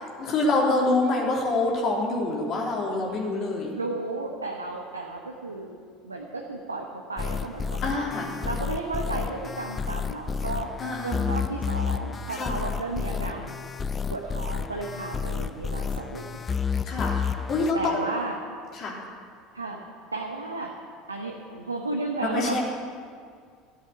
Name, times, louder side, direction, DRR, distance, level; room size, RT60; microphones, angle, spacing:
voice 1, 0.2-3.7 7.8-8.4 10.8-11.2 11.4-11.5 12.3-12.6 16.8-17.2 17.5-17.8 18.8-19.1 22.2-22.6, left 2 dB, 45° left, -2 dB, 3.2 m, -26 dB
voice 2, 3.7-5.7 6.0-8.1 8.4-10.7 11.0-13.5 14.1-16.5 17.7-18.4 19.5-19.8 20.1-20.8 21.1-22.6, right 2 dB, 90° right, 0 dB, 1.1 m, -33 dB
sound 1, 7.2-17.7, left 6 dB, 25° left, 0.6 m, -30 dB
14.0 x 8.1 x 8.1 m, 2.2 s
figure-of-eight pair, 70°, 0 cm